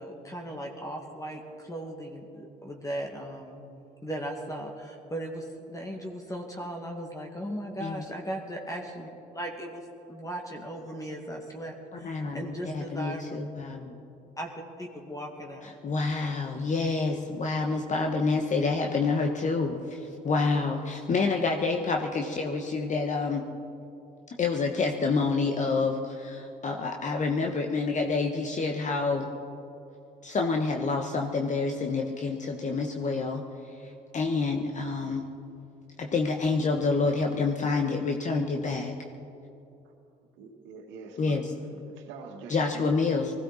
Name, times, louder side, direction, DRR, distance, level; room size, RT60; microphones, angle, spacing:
voice 1, 0.0-3.6 4.0-9.8 10.1-13.2 14.4-14.5 14.8-15.7, right 1 dB, 15° left, 1 dB, 2.1 m, -37 dB
voice 2, 12.0-13.9 15.6-23.4 24.4-29.3 30.2-35.3 36.0-38.9 41.2-41.5 42.5-43.3, left 4 dB, 40° left, 3 dB, 1.3 m, -28 dB
voice 3, 40.4-41.5 41.9-42.9, right 5 dB, 75° right, 4 dB, 1.9 m, -45 dB
20.5 x 15.5 x 4.2 m, 2.8 s
hypercardioid pair, 65°, 19 cm